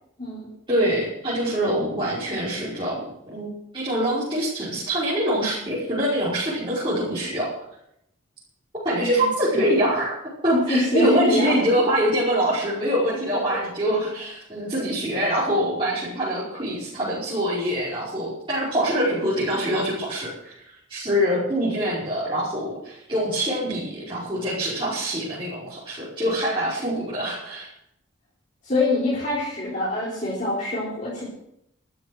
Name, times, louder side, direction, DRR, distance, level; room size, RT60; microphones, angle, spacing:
voice 1, 0.7-7.5 8.8-20.5 20.9-27.7, equal, 25° right, -10 dB, 5.4 m, -24 dB
voice 2, 10.5-11.6 28.6-31.2, left 2 dB, 40° left, -7 dB, 4.1 m, -24 dB
13.5 x 12.5 x 6.3 m, 0.78 s
head